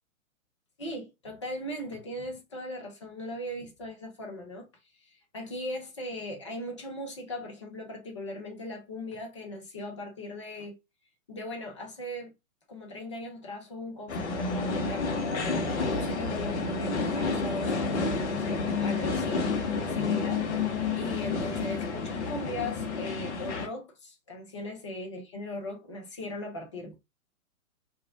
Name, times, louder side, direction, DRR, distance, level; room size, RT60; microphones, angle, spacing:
voice 1, 0.8-4.7 5.0-10.8 11.3-12.3 12.7-20.5 20.9-27.0, left 1 dB, 25° left, 0.4 m, -39 dB
sound 1, 14.1-23.7, left 4 dB, 55° left, 0.8 m, -30 dB
2.9 x 2.4 x 2.4 m
figure-of-eight pair, 120°, 42 cm